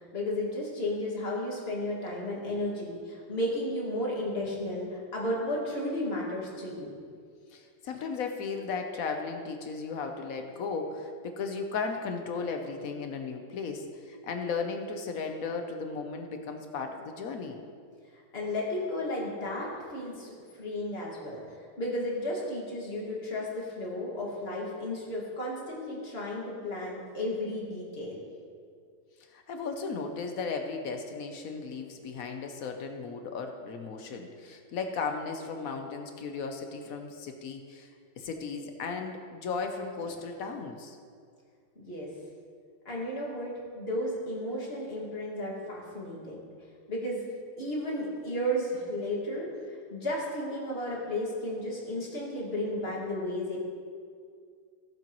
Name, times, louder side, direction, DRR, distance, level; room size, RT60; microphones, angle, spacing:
voice 1, 0.0-6.9 18.3-20.3 20.6-21.4 21.8-28.2 41.8-42.1 42.9-46.4 46.9-47.3 47.6-53.6, left 1 dB, 30° left, -4 dB, 2.0 m, -33 dB
voice 2, 7.5-17.6 29.3-37.9 38.2-41.0, left 4 dB, 60° left, 5 dB, 0.9 m, -35 dB
16.0 x 7.3 x 3.0 m, 2.2 s
omnidirectional pair, 2.2 m